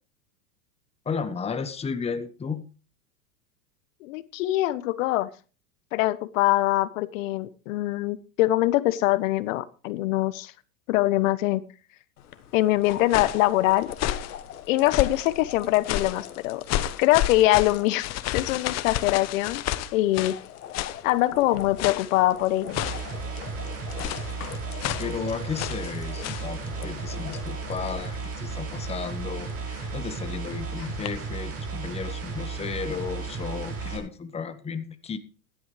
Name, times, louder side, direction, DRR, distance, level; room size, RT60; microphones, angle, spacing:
voice 1, 1.0-2.6 25.0-35.2, left 5 dB, 15° left, 10 dB, 1.2 m, -33 dB
voice 2, 4.0-5.3 5.9-10.5 10.9-11.6 12.5-13.9 14.7-16.6 17.0-19.6 19.9-20.4 21.0-22.8, left 16 dB, 65° left, 17 dB, 1.1 m, -23 dB
sound 1, 12.2-31.1, left 10 dB, 90° left, 1.6 m, -43 dB
sound 2, 12.8-13.4 13.9-14.3 14.9-15.3 15.8-16.2 16.7-20.4 20.7-21.0 21.8-22.2 22.7-23.1 24.0-24.3 24.8-25.1 25.6-25.9 26.2-26.5, left 13 dB, 35° left, 1.0 m, -30 dB
sound 3, 22.7-34.0, right 4 dB, 30° right, 5.6 m, -34 dB
16.0 x 11.5 x 3.3 m, 0.35 s
hypercardioid pair, 115°, 44 cm